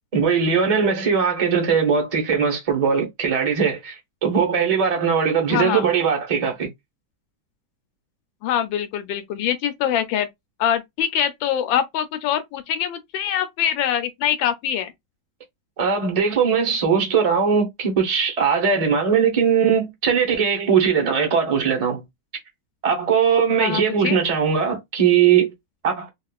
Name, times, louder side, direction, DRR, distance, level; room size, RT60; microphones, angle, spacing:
voice 1, 0.1-6.7 15.8-22.0 22.8-25.5 25.8-26.1, right 6 dB, 75° right, 0.3 m, -20 dB
voice 2, 5.5-5.8 8.4-10.3 10.6-14.9 23.6-24.2, left 9 dB, 80° left, 1.4 m, -24 dB
3.5 x 2.4 x 2.3 m
omnidirectional pair, 2.1 m